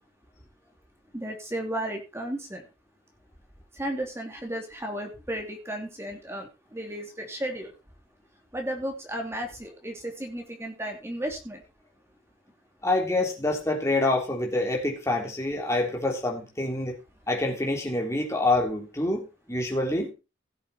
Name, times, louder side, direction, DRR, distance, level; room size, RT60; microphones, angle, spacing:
voice 1, 1.1-2.6 3.7-7.7 8.5-11.6, right 1 dB, 15° right, 3 dB, 2.5 m, -34 dB
voice 2, 12.8-17.0 17.3-20.1, left 2 dB, 15° left, 0 dB, 3.3 m, -26 dB
16.5 x 7.4 x 4.2 m, 0.29 s
head